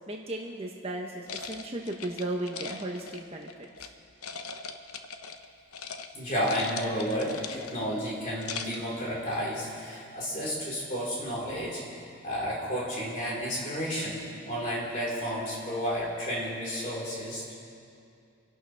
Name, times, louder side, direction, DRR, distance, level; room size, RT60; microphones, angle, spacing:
voice 1, 0.1-3.7, right 1 dB, 25° right, 0 dB, 1.0 m, -35 dB
sound 1, 1.3-3.9 4.2-5.5 5.7-6.1 6.3-7.9 8.3-8.9, left 5 dB, 85° left, 0.9 m, -40 dB
voice 2, 6.1-11.8 12.2-17.5, equal, 35° left, -6 dB, 4.4 m, -32 dB
27.0 x 11.5 x 3.5 m, 2.5 s
head